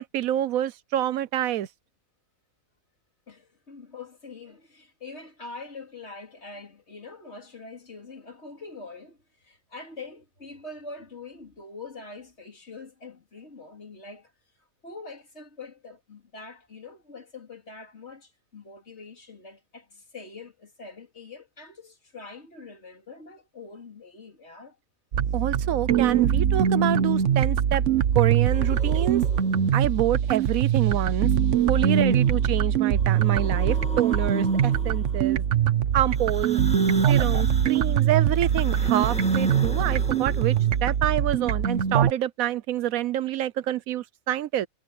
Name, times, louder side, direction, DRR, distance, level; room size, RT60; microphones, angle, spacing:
voice 1, 0.0-1.7 25.3-27.8 28.1-29.2 29.7-31.3 31.7-35.4 35.9-36.6 37.1-40.5 40.8-44.7, right 12 dB, 90° right, 1.1 m, -27 dB
voice 2, 3.3-14.3 14.8-24.8 31.7-32.2, left 3 dB, 55° left, 3.2 m, -44 dB
sound 1, 25.1-42.1, right 8 dB, 65° right, 1.2 m, -22 dB
sound 2, 28.5-29.8 31.5-32.4 32.8-35.3 36.1-41.0, left 1 dB, 5° left, 1.8 m, -39 dB
omnidirectional pair, 1.4 m